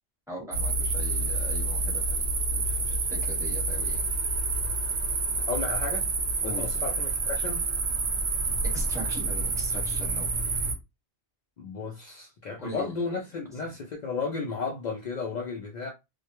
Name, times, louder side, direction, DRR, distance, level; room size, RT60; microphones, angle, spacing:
voice 1, 0.3-4.1 6.4-6.7 8.7-10.3 12.6-13.1, right 1 dB, 5° right, 0.9 m, -41 dB
sound 1, 0.5-10.7, right 3 dB, 55° right, 0.7 m, -28 dB
voice 2, 5.3-7.7 11.6-15.9, left 4 dB, 70° left, 0.4 m, -34 dB
2.2 x 2.1 x 2.9 m
omnidirectional pair, 1.3 m